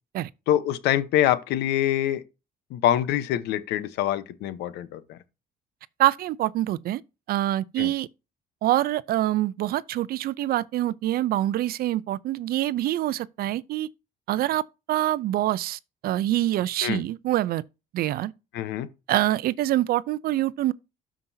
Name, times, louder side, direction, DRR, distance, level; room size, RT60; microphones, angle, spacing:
voice 1, 0.5-2.2 2.7-5.2 7.8-7.9 16.8-17.0 18.5-18.9, left 11 dB, 85° left, 0.9 m, -25 dB
voice 2, 6.0-7.0 7.3-8.1 8.6-13.9 14.3-14.6 14.9-17.6 17.9-18.3 19.1-20.7, right 14 dB, 65° right, 0.5 m, -25 dB
13.0 x 5.2 x 2.7 m
cardioid pair, 110°, 17 cm